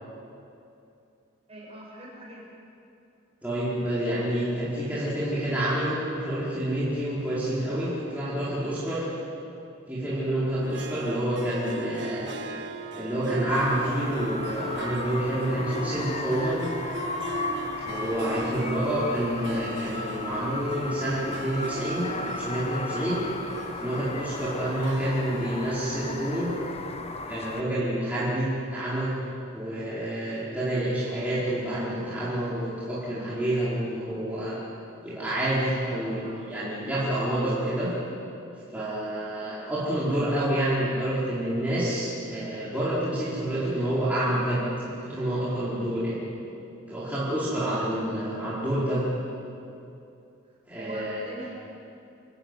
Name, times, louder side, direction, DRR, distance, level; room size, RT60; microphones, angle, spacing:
voice 1, 1.5-2.5 4.7-5.1 7.8-8.0 18.4-18.7 36.2-36.5 39.4-39.8 47.5-47.8 50.8-51.5, right 1 dB, 30° right, -4 dB, 7.0 m, -44 dB
voice 2, 3.4-9.1 9.9-12.3 12.9-16.7 17.8-23.2 23.8-26.6 27.2-29.1 29.5-34.6 35.0-37.9 38.7-44.6 44.9-46.2 46.9-49.0 50.7-51.2, right 1 dB, 5° right, -10 dB, 4.6 m, -28 dB
Harp, 10.6-27.1, right 3 dB, 60° right, 1.5 m, -40 dB
sound 1, 13.5-27.6, left 3 dB, 30° left, 1.3 m, -36 dB
26.5 x 15.5 x 9.2 m, 2.7 s
head